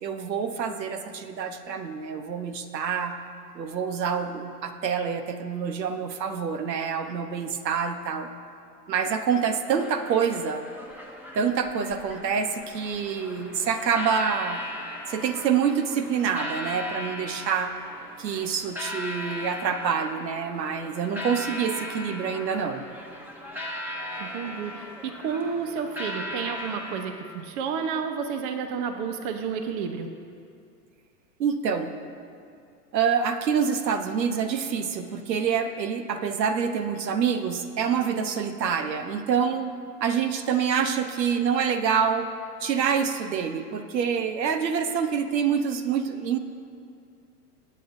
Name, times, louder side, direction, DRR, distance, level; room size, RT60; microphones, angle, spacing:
voice 1, 0.0-3.2 3.5-8.3 8.9-10.6 11.3-14.6 15.1-17.8 18.2-22.8 31.4-31.9 32.9-39.8 40.0-42.3 42.6-46.4, right 7 dB, 85° right, 9 dB, 1.1 m, -26 dB
sound 1, 9.7-27.0, left 1 dB, 5° right, 1.0 m, -38 dB
voice 2, 24.2-30.1, right 6 dB, 40° right, 7 dB, 0.9 m, -31 dB
21.5 x 8.7 x 2.7 m, 2.4 s
hypercardioid pair, 120°, 49 cm